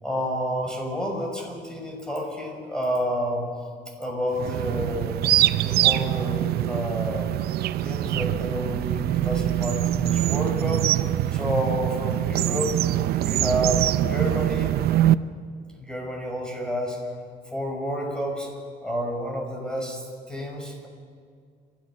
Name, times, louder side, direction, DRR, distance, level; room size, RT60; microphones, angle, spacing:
voice 1, 0.0-3.5 4.0-5.2 5.5-7.3 7.8-10.9 11.3-12.7 13.2-14.7 15.8-17.0 17.5-18.5 18.8-20.9, equal, 5° left, 0 dB, 6.3 m, -29 dB
sound 1, 4.3-15.1, right 13 dB, 70° right, 0.6 m, -24 dB
29.5 x 14.0 x 6.3 m, 2.1 s
cardioid pair, 110°, 17 cm